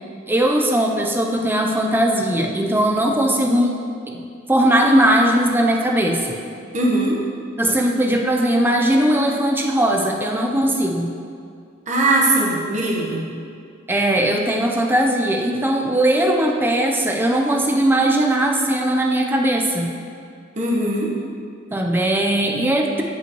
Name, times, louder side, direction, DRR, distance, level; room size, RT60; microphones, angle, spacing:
voice 1, 0.3-3.7 4.1-4.2 4.5-6.4 7.6-11.1 13.9-19.9 21.7-23.0, right 1 dB, 10° right, 1 dB, 0.7 m, -19 dB
voice 2, 6.7-7.2 11.9-13.3 20.6-21.1, right 2 dB, 35° right, -4 dB, 1.3 m, -20 dB
15.5 x 5.5 x 3.1 m, 2.3 s
head